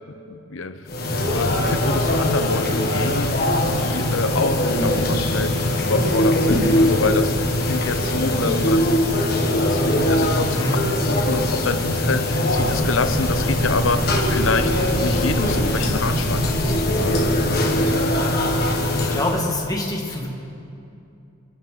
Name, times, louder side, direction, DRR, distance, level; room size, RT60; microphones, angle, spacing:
voice 1, 0.1-0.9 1.2-17.8, left 3 dB, 85° left, 10 dB, 0.8 m, -27 dB
sound 1, 0.9-19.5, left 1 dB, 50° left, 1.7 m, -21 dB
sound 2, 12.6-18.5, equal, 40° right, 1.6 m, -30 dB
voice 2, 18.9-20.3, left 1 dB, 20° left, -1 dB, 1.7 m, -25 dB
30.0 x 10.5 x 3.8 m, 2.6 s
head